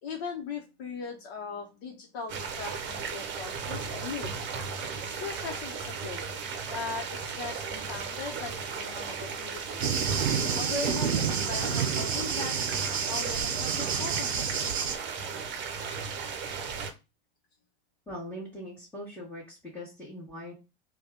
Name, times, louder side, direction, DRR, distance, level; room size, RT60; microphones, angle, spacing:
voice 1, 0.0-4.3 5.0-6.3 6.7-9.9 10.6-14.9, left 5 dB, 60° left, -1 dB, 1.0 m, -39 dB
sound 1, 2.3-16.9, right 5 dB, 35° right, 0.8 m, -36 dB
Thunder, 9.8-15.0, right 7 dB, 90° right, 0.6 m, -29 dB
voice 2, 18.1-20.5, equal, 5° left, -7 dB, 1.8 m, -41 dB
3.4 x 2.4 x 3.8 m, 0.27 s
hypercardioid pair, 85°, 31 cm